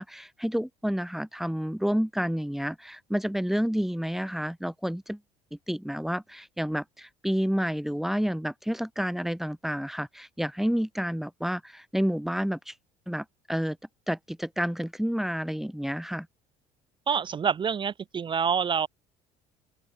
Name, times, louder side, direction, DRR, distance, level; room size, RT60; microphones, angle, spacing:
voice 1, 0.0-5.2 5.5-12.7 13.1-13.8 14.1-16.3, equal, ahead, 2.4 m, -30 dB
voice 2, 17.1-18.9, right 7 dB, 30° right, 0.6 m, -27 dB
open air
supercardioid pair, 85°, 16 cm